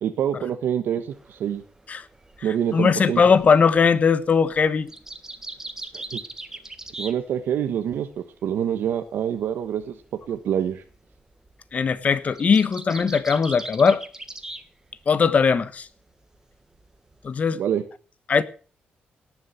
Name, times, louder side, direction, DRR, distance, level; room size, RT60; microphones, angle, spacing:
voice 1, 0.0-1.6 2.4-3.2 5.9-6.2 7.0-10.0 10.3-10.8 17.5-17.8, right 9 dB, 85° right, 1.3 m, -26 dB
sound 1, 1.1-7.8 8.1-14.7 14.9-15.6 16.0-17.4, right 2 dB, 15° right, 1.6 m, -40 dB
voice 2, 2.7-4.9 11.7-14.0 15.1-15.9 17.2-17.6 18.3-18.4, left 5 dB, 45° left, 1.2 m, -19 dB
18.0 x 7.3 x 7.0 m
cardioid pair, 120°, 4 cm